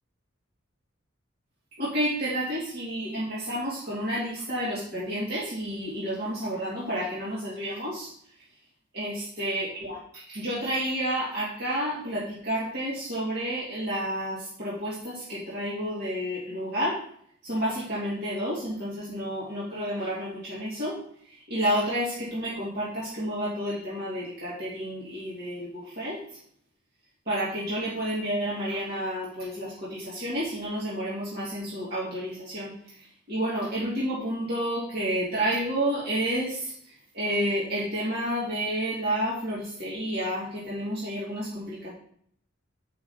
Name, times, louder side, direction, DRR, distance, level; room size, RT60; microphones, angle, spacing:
voice 1, 1.8-8.1 8.9-17.0 17.4-21.0 21.3-26.2 27.3-41.9, equal, 50° right, -8 dB, 2.4 m, -30 dB
7.2 x 5.9 x 4.2 m, 0.64 s
head